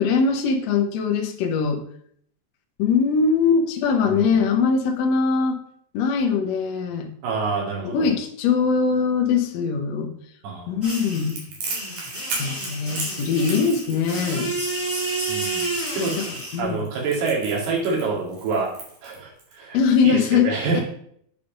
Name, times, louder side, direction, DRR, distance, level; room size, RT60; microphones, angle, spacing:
voice 1, 0.0-1.8 2.8-5.6 5.9-7.1 7.8-10.1 10.7-11.4 12.4-14.5 16.2-16.3 16.5-16.8 19.7-20.8, left 5 dB, 90° left, 4 dB, 1.5 m, -21 dB
voice 2, 4.1-4.4 7.2-8.1 10.4-10.8 15.3-15.7 16.0-16.2 16.6-18.7 19.0-19.8 20.0-20.8, right 4 dB, 75° right, -2 dB, 4.1 m, -26 dB
sound 1, 10.8-16.6, right 2 dB, 5° right, 1.8 m, -30 dB
Crackle, 11.3-19.5, right 3 dB, 60° right, 3.6 m, -35 dB
8.4 x 5.4 x 5.2 m, 0.65 s
omnidirectional pair, 4.5 m